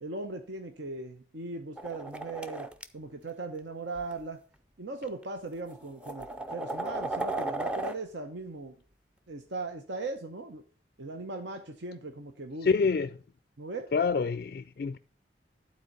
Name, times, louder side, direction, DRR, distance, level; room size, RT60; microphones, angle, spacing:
voice 1, 0.0-2.7 2.9-4.4 4.8-8.8 9.3-10.6 11.0-12.7 13.6-13.9, right 3 dB, 80° right, 0.9 m, -39 dB
sound 1, 1.8-2.8 4.0-4.1 5.0-5.1 5.7-8.0, right 2 dB, 5° right, 0.5 m, -35 dB
voice 2, 12.6-13.1 13.9-15.0, left 5 dB, 55° left, 0.3 m, -27 dB
11.5 x 4.3 x 6.7 m
head